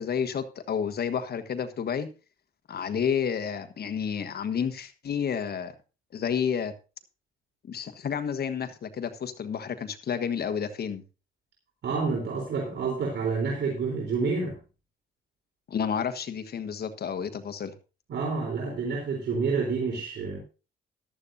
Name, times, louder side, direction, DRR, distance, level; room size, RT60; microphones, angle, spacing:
voice 1, 0.0-2.1 2.7-5.7 6.1-6.7 7.7-11.0 15.7-17.7, left 7 dB, 55° left, 10 dB, 1.4 m, -30 dB
voice 2, 11.8-14.6 18.1-20.4, right 4 dB, 60° right, 0 dB, 3.8 m, -28 dB
14.5 x 11.5 x 2.7 m, 0.33 s
cardioid pair, 90°, 20 cm